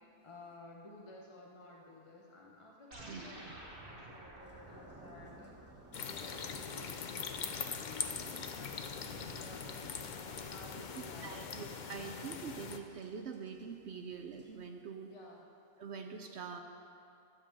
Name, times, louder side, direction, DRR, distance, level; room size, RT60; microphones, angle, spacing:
voice 1, 0.2-11.7 15.1-15.5, left 2 dB, 25° left, -2 dB, 0.8 m, -54 dB
sound 1, 2.9-7.6, right 2 dB, 40° right, 1.5 m, -53 dB
sound 2, 4.4-14.6, right 1 dB, 10° right, 1.1 m, -58 dB
sound 3, 5.9-12.8, left 6 dB, 85° left, 0.4 m, -42 dB
voice 2, 10.9-15.1 15.8-16.6, right 6 dB, 60° right, 5 dB, 0.8 m, -45 dB
12.5 x 5.2 x 7.5 m, 2.5 s
omnidirectional pair, 1.5 m